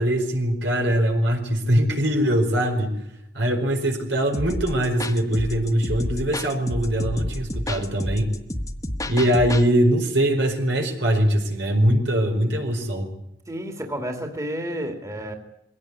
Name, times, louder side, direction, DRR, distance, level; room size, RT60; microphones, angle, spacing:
voice 1, 0.0-3.0 3.3-8.3 9.1-13.1, right 1 dB, 75° right, 4 dB, 4.8 m, -22 dB
sound 1, 4.3-9.7, left 1 dB, 20° left, 1.5 m, -30 dB
voice 2, 13.5-15.4, equal, 20° right, 4 dB, 2.5 m, -30 dB
22.0 x 17.5 x 9.8 m, 0.79 s
head